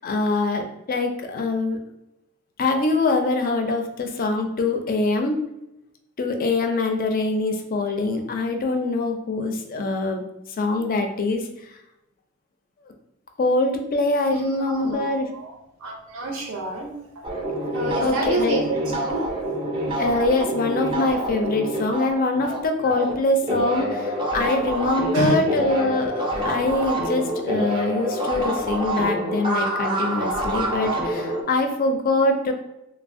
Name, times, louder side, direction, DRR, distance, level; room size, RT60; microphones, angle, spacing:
voice 1, 0.0-1.8 2.6-5.4 6.2-10.2 10.6-11.5 13.4-15.3 18.0-18.6 20.0-32.5, left 2 dB, 45° left, 4 dB, 0.4 m, -23 dB
voice 2, 14.3-15.6 15.8-16.9 17.7-19.2 25.1-25.4, right 2 dB, 80° right, 1 dB, 0.5 m, -28 dB
sound 1, 17.2-23.1 23.4-31.4, right 1 dB, 25° right, 0.4 m, -27 dB
3.2 x 2.0 x 2.5 m, 0.88 s
head